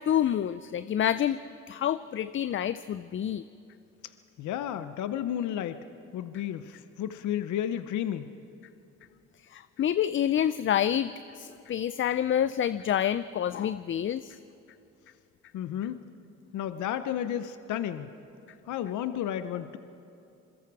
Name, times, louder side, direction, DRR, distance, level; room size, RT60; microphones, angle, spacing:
voice 1, 0.0-1.4 1.7-3.4 9.5-14.4, left 10 dB, 40° left, 14 dB, 0.5 m, -28 dB
voice 2, 4.4-5.8 6.1-8.3 15.5-16.0 16.5-18.1 18.7-19.8, left 10 dB, 75° left, 11 dB, 0.8 m, -32 dB
27.5 x 21.5 x 4.8 m, 2.6 s
cardioid pair, 90°, 30 cm